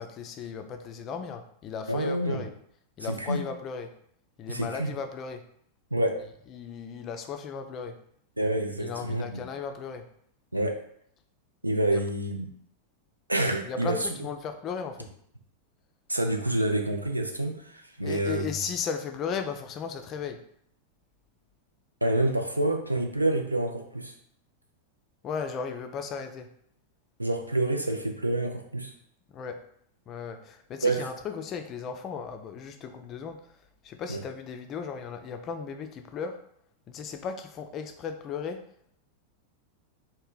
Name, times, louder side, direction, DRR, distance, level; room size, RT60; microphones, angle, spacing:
voice 1, 0.0-2.5 3.0-3.9 4.4-5.4 6.5-8.0 8.8-10.1 11.9-12.0 13.7-15.1 18.0-20.4 25.2-26.5 29.3-29.6 30.1-33.4 33.8-36.4 36.9-38.6, left 6 dB, 30° left, 6 dB, 0.3 m, -36 dB
voice 2, 1.9-2.4 3.0-3.4 4.5-4.9 5.9-6.2 8.4-9.4 10.5-10.8 11.6-12.5 13.3-14.1 16.1-18.5 22.0-24.1 27.2-28.9 30.8-31.0 34.1-34.2, right 1 dB, 85° right, 3 dB, 0.4 m, -27 dB
3.1 x 2.1 x 3.8 m, 0.68 s
figure-of-eight pair, 90°, 0 cm